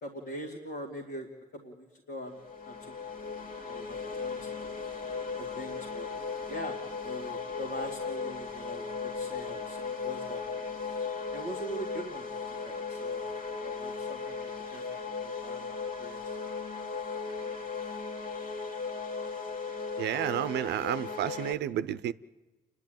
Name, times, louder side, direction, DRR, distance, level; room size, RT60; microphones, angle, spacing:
voice 1, 0.0-2.4 2.6-3.3 3.6-4.6 5.4-6.1 6.5-6.8 7.0-10.6 11.3-13.2 13.6-16.3 17.4-17.6, equal, 80° left, 2.5 m, -42 dB
sound 1, 2.3-21.5, left 5 dB, 55° left, 2.0 m, -37 dB
voice 2, 20.0-22.1, right 11 dB, 85° right, 0.6 m, -31 dB
29.0 x 11.5 x 9.2 m
supercardioid pair, 50°, 17 cm